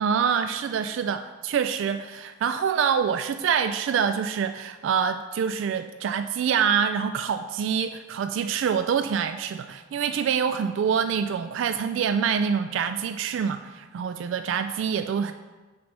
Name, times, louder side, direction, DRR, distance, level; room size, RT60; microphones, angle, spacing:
voice 1, 0.0-15.3, right 7 dB, 85° right, 9 dB, 0.3 m, -26 dB
6.3 x 4.1 x 5.9 m, 1.3 s
head